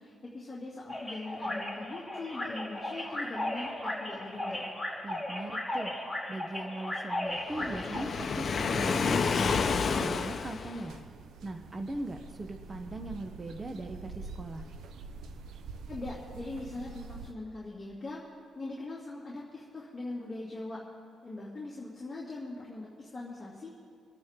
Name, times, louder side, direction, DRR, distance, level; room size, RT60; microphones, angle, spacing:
voice 1, 0.0-4.7 15.9-18.2 18.5-20.8 21.2-23.7, left 2 dB, 15° left, -6 dB, 2.6 m, -41 dB
sound 1, 0.9-8.0, left 1 dB, 5° right, 2.7 m, -36 dB
voice 2, 5.0-5.9 6.3-10.9 11.4-14.7, right 2 dB, 25° right, 5 dB, 0.8 m, -40 dB
Waves surf, 7.5-11.0, left 5 dB, 45° left, 0.8 m, -29 dB
sound 2, 10.9-17.3, right 4 dB, 80° right, 0.8 m, -46 dB
26.0 x 9.4 x 3.7 m, 2.2 s
cardioid pair, 130°, 0 cm